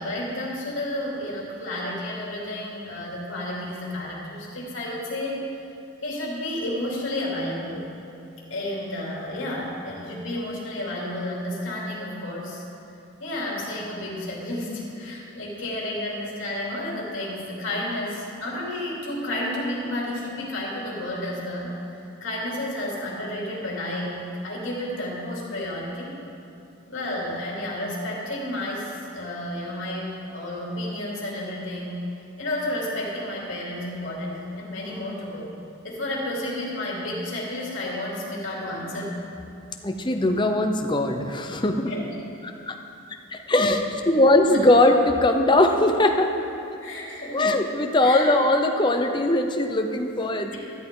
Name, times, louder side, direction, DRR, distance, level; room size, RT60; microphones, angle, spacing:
voice 1, 0.0-5.4 6.0-7.8 8.5-12.6 13.2-21.7 22.2-26.2 26.9-32.1 32.4-35.5 35.8-39.2 41.9-42.0 44.5-44.6 46.8-47.4 48.0-48.3, left 1 dB, 65° left, -5 dB, 3.1 m, -31 dB
voice 2, 39.8-41.7 43.5-46.3 47.3-50.5, left 1 dB, 20° left, 4 dB, 0.7 m, -20 dB
13.5 x 13.5 x 3.9 m, 2.7 s
head